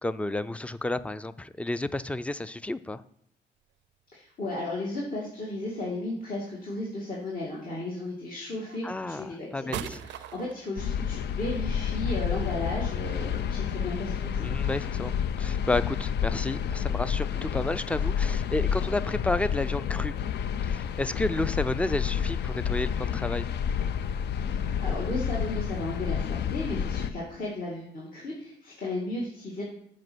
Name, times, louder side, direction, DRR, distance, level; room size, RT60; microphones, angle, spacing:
voice 1, 0.0-3.0 8.8-10.0 14.4-15.1 15.4-20.1 20.6-23.5, left 2 dB, 5° left, 15 dB, 0.4 m, -31 dB
sound 1, 3.6-3.7 4.4-5.1 6.5-7.0 7.9-8.1 8.7-14.0, right 13 dB, 80° right, 0.4 m, -44 dB
voice 2, 4.1-14.5 24.5-29.6, left 2 dB, 50° left, -5 dB, 2.2 m, -34 dB
sound 2, 10.8-27.1, left 8 dB, 70° left, 0.5 m, -29 dB
7.5 x 5.0 x 6.2 m, 0.69 s
cardioid pair, 90°, 19 cm